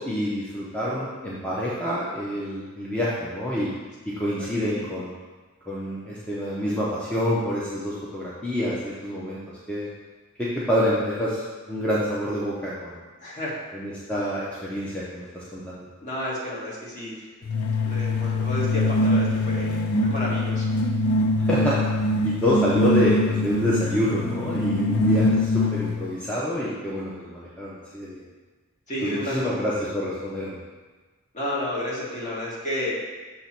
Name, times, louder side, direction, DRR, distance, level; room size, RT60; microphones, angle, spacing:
voice 1, 0.0-3.7 4.1-5.1 5.7-9.9 10.4-11.4 11.7-13.0 13.7-15.9 21.4-21.8 22.2-28.2 29.0-30.6, equal, 5° left, -8 dB, 0.8 m, -27 dB
voice 2, 13.2-13.6 16.0-17.2 17.8-20.7 28.9-29.5 31.3-32.9, left 1 dB, 35° left, -6 dB, 1.7 m, -31 dB
sound 1, 17.5-26.0, left 1 dB, 85° left, 0.5 m, -23 dB
6.9 x 3.0 x 5.9 m, 1.3 s
head